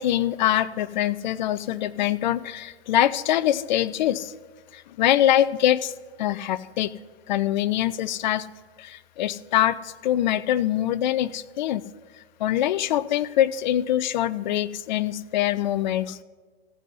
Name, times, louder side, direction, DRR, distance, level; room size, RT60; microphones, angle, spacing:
voice 1, 0.0-4.3 4.7-5.9 6.2-6.9 7.3-8.5 8.8-11.8 12.4-16.2, left 12 dB, 45° left, 15 dB, 0.5 m, -24 dB
14.5 x 5.5 x 7.7 m, 1.5 s
figure-of-eight pair, 115°, 31 cm